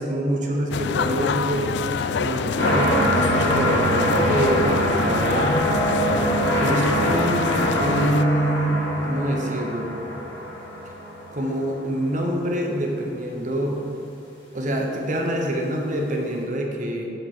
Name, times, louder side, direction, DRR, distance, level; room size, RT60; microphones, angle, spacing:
voice 1, 0.0-1.8 2.2-5.6 6.6-9.9 11.3-13.8 14.5-17.1, right 1 dB, 40° right, 1 dB, 1.0 m, -25 dB
sound 1, 0.7-8.2, left 5 dB, 65° left, 0.3 m, -27 dB
sound 2, 2.6-11.7 12.3-12.4, equal, 80° left, 1.9 m, -23 dB
7.9 x 4.9 x 6.3 m, 2.5 s
head